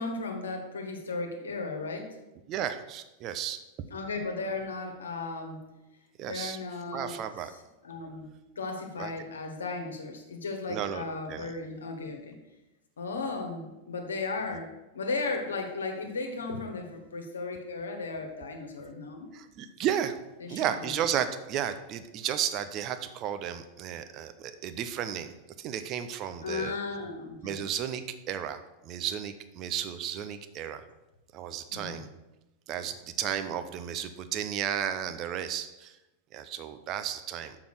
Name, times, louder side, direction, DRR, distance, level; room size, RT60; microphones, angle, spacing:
voice 1, 0.0-2.2 3.9-5.7 6.2-7.2 7.5-12.4 13.0-19.3 20.4-21.0 26.4-27.6 31.7-32.1, left 3 dB, 70° left, 3 dB, 1.5 m, -36 dB
voice 2, 2.5-3.6 6.2-6.6 6.9-7.5 9.0-9.1 10.7-11.0 11.3-11.5 19.3-20.1 20.5-25.3 25.6-26.7 27.4-30.8 31.3-32.1 32.7-36.0 36.3-37.6, right 9 dB, 35° right, 10 dB, 0.7 m, -33 dB
7.0 x 5.9 x 6.4 m, 0.99 s
figure-of-eight pair, 90°, 0 cm